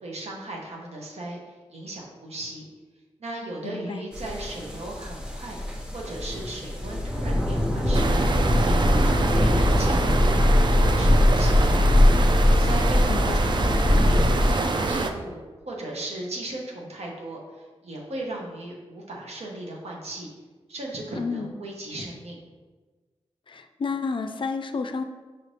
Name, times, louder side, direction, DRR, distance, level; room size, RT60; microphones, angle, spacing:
voice 1, 0.0-2.7 3.2-5.6 5.9-8.2 8.6-10.4 10.8-12.1 12.5-13.5 14.0-20.3 20.7-22.4, right 1 dB, 80° right, -1 dB, 0.9 m, -37 dB
voice 2, 3.6-4.0 13.1-13.4 21.1-21.5 23.5-25.0, left 4 dB, 55° left, 7 dB, 0.4 m, -31 dB
sound 1, 4.1-14.5, left 1 dB, 10° right, 0.8 m, -21 dB
sound 2, 7.9-15.1, right 3 dB, 45° right, 0.4 m, -26 dB
5.7 x 2.6 x 3.3 m, 1.3 s
cardioid pair, 50°, 11 cm